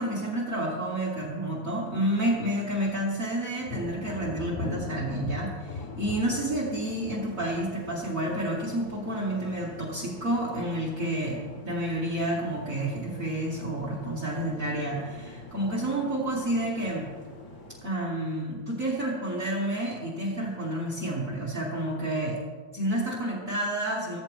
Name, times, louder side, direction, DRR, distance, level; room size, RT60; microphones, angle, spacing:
voice 1, 0.0-17.1 17.8-22.4 22.7-24.2, right 1 dB, 65° right, -5 dB, 0.8 m, -30 dB
Thunder, 3.6-10.1 10.4-11.0 11.5-12.3, left 4 dB, 85° left, 1.7 m, -39 dB
sound 1, 5.8-17.8, left 1 dB, 50° left, 1.4 m, -47 dB
16.5 x 15.0 x 3.7 m, 1.5 s
omnidirectional pair, 5.3 m